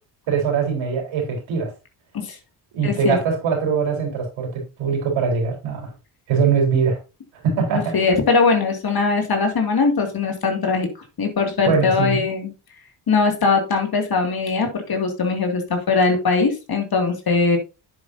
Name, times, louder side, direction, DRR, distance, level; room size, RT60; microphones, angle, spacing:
voice 1, 0.3-1.7 2.7-5.9 6.3-7.0 7.3-8.0 11.6-12.3, right 6 dB, 70° right, 1 dB, 4.2 m, -22 dB
voice 2, 2.8-3.2 7.9-10.9 11.2-12.5 13.1-17.6, left 4 dB, 50° left, 4 dB, 2.3 m, -20 dB
9.4 x 7.7 x 2.7 m, 0.29 s
supercardioid pair, 55°, 48 cm